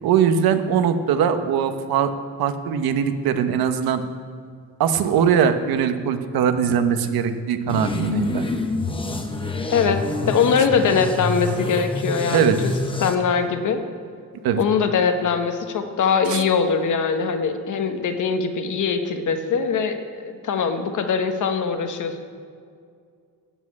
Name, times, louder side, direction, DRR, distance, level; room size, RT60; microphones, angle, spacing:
voice 1, 0.0-2.1 2.4-4.0 4.8-8.4 12.3-12.6 14.4-14.6 16.3-16.4, right 7 dB, 80° right, 8 dB, 1.1 m, -21 dB
sound 1, 7.7-13.2, left 2 dB, 15° left, 0.9 m, -27 dB
voice 2, 9.7-12.7 13.0-13.8 14.6-22.2, left 6 dB, 55° left, 7 dB, 1.2 m, -22 dB
12.5 x 7.5 x 8.6 m, 2.2 s
cardioid pair, 150°, 36 cm